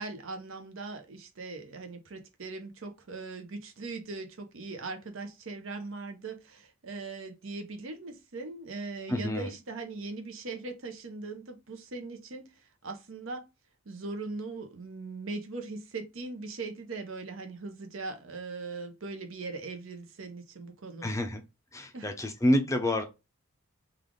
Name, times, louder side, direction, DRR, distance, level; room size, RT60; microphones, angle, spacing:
voice 1, 0.0-12.5 12.8-13.5 13.9-21.1 21.9-22.1, right 3 dB, 65° right, 0.8 m, -40 dB
voice 2, 9.1-9.5 21.0-21.4 21.7-23.0, left 1 dB, 15° left, 0.5 m, -28 dB
3.3 x 2.4 x 3.7 m
head